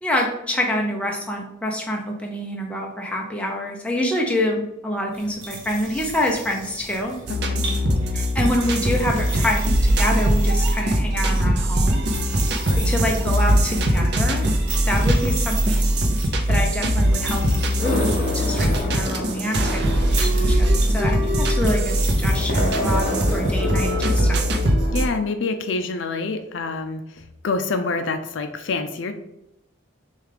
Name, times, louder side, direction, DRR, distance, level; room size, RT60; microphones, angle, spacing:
voice 1, 0.0-7.2 8.1-12.0 12.8-14.5 14.9-15.9 16.5-24.4, left 1 dB, 5° left, 0 dB, 0.6 m, -26 dB
sound 1, 5.1-24.0, right 3 dB, 80° right, 1.1 m, -36 dB
sound 2, 7.3-25.1, equal, 55° right, 0.5 m, -21 dB
voice 2, 12.6-13.0 24.9-29.1, left 3 dB, 65° left, 7 dB, 0.4 m, -27 dB
sound 3, 17.8-25.1, left 1 dB, 45° left, 0.8 m, -31 dB
6.5 x 2.4 x 3.3 m, 0.85 s
head